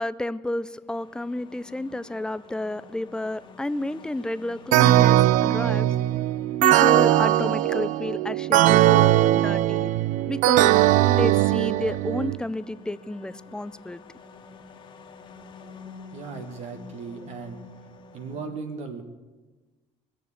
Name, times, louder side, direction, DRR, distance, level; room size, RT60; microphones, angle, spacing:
voice 1, 0.0-5.9 6.6-9.9 10.3-10.7 11.1-14.0, left 1 dB, 5° left, 15 dB, 0.4 m, -31 dB
sound 1, 0.9-18.5, left 5 dB, 40° left, 1.8 m, -49 dB
sound 2, 4.7-12.4, right 14 dB, 70° right, 0.4 m, -19 dB
voice 2, 16.1-17.6 18.1-19.0, right 5 dB, 55° right, 6 dB, 1.4 m, -36 dB
20.0 x 7.2 x 8.4 m, 1.2 s
cardioid pair, 130°, 13 cm